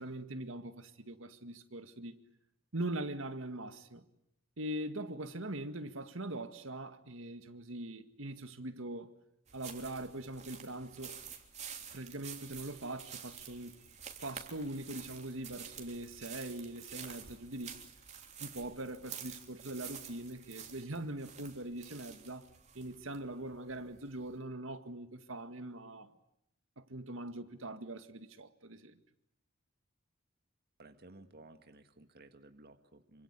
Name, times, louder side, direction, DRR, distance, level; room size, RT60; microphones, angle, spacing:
voice 1, 0.0-2.1 2.7-4.0 4.6-9.1 9.5-11.2 11.9-13.8 14.2-17.8 18.4-22.5 22.7-26.1 26.8-29.0, right 1 dB, 70° right, 2.0 m, -42 dB
sound 1, 9.5-24.4, right 7 dB, 35° right, 3.5 m, -49 dB
voice 2, 30.8-33.2, right 2 dB, 50° right, 1.8 m, -56 dB
27.5 x 26.0 x 8.3 m
head